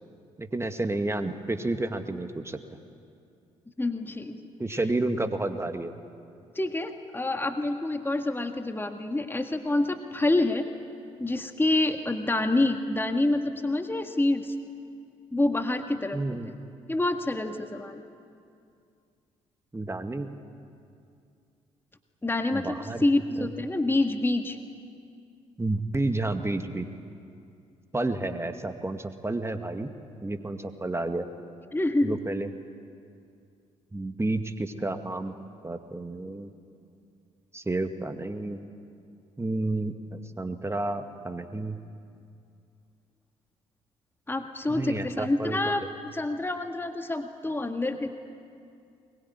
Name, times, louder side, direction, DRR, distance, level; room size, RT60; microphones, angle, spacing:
voice 1, 0.4-2.6 4.6-5.9 16.1-16.6 19.7-20.3 22.5-23.0 23.4-23.5 25.6-26.9 27.9-29.9 30.2-31.3 32.0-32.5 33.9-35.4 35.6-36.5 37.5-38.6 39.4-41.8 44.7-45.8, right 2 dB, 15° right, 7 dB, 2.1 m, -30 dB
voice 2, 3.8-4.4 6.6-10.7 11.2-14.5 15.3-16.4 16.9-18.0 22.2-22.8 23.0-24.6 31.7-32.1 44.3-45.8 46.1-48.1, left 2 dB, 15° left, 6 dB, 1.8 m, -27 dB
22.5 x 22.0 x 9.7 m, 2.4 s
figure-of-eight pair, 40°, 16 cm